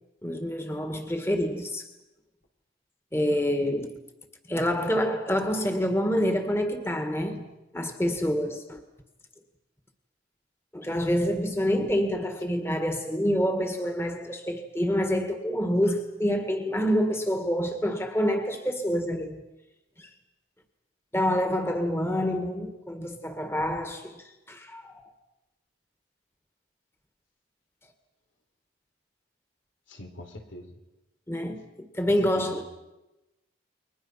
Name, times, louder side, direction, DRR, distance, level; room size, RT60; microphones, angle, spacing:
voice 1, 0.2-1.9 3.1-3.9 4.5-7.5 7.7-8.8 10.7-19.4 20.0-20.1 21.1-25.0 31.3-32.6, equal, 15° left, 1.9 m, -27 dB
voice 2, 29.9-30.7 32.1-32.6, left 1 dB, 85° left, 4.1 m, -43 dB
29.5 x 23.0 x 5.8 m
head